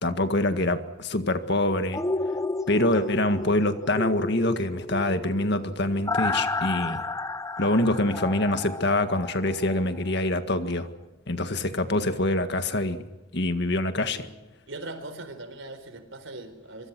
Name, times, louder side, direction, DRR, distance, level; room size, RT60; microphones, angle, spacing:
voice 1, 0.0-2.0 2.7-7.0 7.6-10.9 11.3-13.0 13.3-14.3, left 1 dB, 55° left, 8 dB, 1.9 m, -25 dB
sound 1, 1.9-9.8 10.2-10.3, left 2 dB, 15° left, 0.8 m, -32 dB
voice 2, 14.7-16.9, right 2 dB, 75° right, 10 dB, 4.3 m, -40 dB
25.0 x 24.0 x 6.2 m, 1.1 s
head